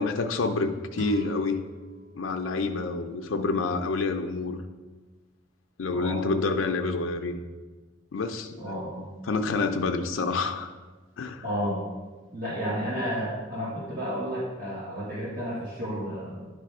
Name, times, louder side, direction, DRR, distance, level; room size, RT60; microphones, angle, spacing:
voice 1, 0.0-1.6 2.1-4.6 5.8-7.4 8.1-8.7 9.3-10.7 11.2-11.4, left 3 dB, 90° left, 6 dB, 0.5 m, -28 dB
sound 1, 0.9-4.0, right 2 dB, 65° right, 0.7 m, -42 dB
voice 2, 5.9-6.2 8.6-9.1 11.4-11.8 12.3-16.5, equal, 45° right, -9 dB, 1.8 m, -32 dB
10.0 x 3.4 x 4.8 m, 1.3 s
head